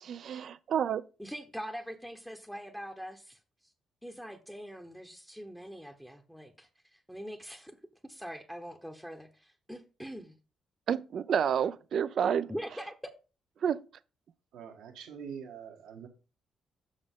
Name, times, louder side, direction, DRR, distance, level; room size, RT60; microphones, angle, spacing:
voice 1, 0.0-1.0 10.9-12.5 13.6-13.8, right 8 dB, 60° right, 0.4 m, -29 dB
voice 2, 1.2-3.4 4.0-7.8 8.0-10.4 12.5-12.9, equal, ahead, 0.9 m, -43 dB
voice 3, 14.5-16.1, right 7 dB, 85° right, 1.5 m, -44 dB
7.2 x 6.4 x 3.7 m
cardioid pair, 90°, 0 cm